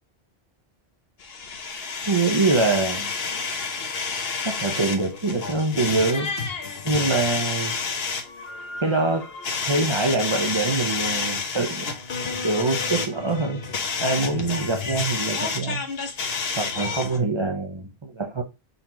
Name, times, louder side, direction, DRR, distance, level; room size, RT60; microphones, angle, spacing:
sound 1, 1.2-17.2, left 5 dB, 70° left, 1.1 m, -29 dB
voice 1, 2.1-3.1 4.4-6.3 6.8-7.8 8.8-9.3 9.7-11.9 12.4-13.6 14.0-15.8 16.5-18.4, right 3 dB, 35° right, 0.6 m, -24 dB
4.0 x 2.8 x 4.4 m
omnidirectional pair, 1.0 m